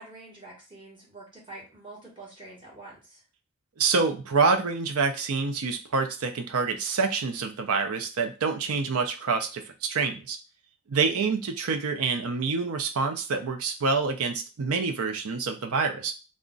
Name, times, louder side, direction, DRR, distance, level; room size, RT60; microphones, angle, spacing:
voice 1, 0.0-3.2 11.0-11.4, right 2 dB, 20° right, -4 dB, 1.1 m, -46 dB
voice 2, 3.8-10.4 10.9-16.1, right 4 dB, 80° right, 5 dB, 0.5 m, -27 dB
2.4 x 2.1 x 3.7 m, 0.32 s
head